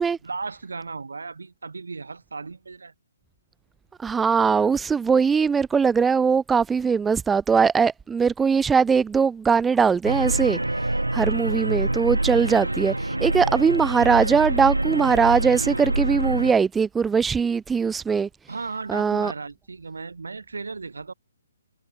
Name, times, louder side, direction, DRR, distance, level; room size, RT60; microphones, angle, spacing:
voice 1, 0.2-2.9 18.5-21.1, right 4 dB, 70° right, 7.5 m, -35 dB
voice 2, 4.0-10.6 11.1-18.3 18.9-19.3, right 6 dB, 10° right, 0.5 m, -21 dB
sound 1, 10.1-16.5, right 1 dB, 85° right, 1.1 m, -26 dB
figure-of-eight pair, 135°, 0 cm